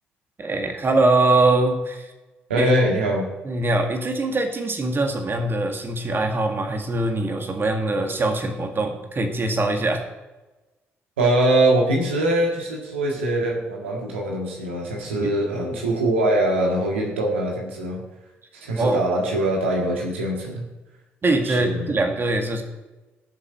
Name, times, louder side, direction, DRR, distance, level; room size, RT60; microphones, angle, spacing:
voice 1, 0.4-2.1 2.6-2.7 3.5-10.0 15.2-15.3 15.7-15.8 18.8-19.0 21.2-22.6, right 2 dB, 35° right, 4 dB, 2.0 m, -22 dB
voice 2, 2.5-3.3 11.2-18.0 18.5-20.6 21.4-21.9, right 1 dB, 80° right, -1 dB, 2.0 m, -22 dB
18.5 x 7.3 x 4.5 m, 1.1 s
figure-of-eight pair, 40°, 6 cm